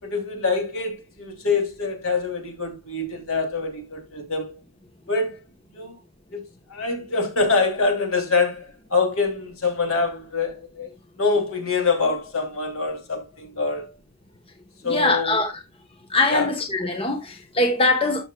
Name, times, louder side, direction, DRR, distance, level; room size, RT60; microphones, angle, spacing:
voice 1, 0.0-4.6 5.1-5.4 5.7-6.0 6.3-6.4 6.7-10.9 11.2-13.9 14.8-15.4 16.3-16.5, left 4 dB, 70° left, 2.9 m, -25 dB
voice 2, 14.8-15.6 16.1-18.2, left 2 dB, 25° left, 1.0 m, -22 dB
12.5 x 6.3 x 2.2 m
head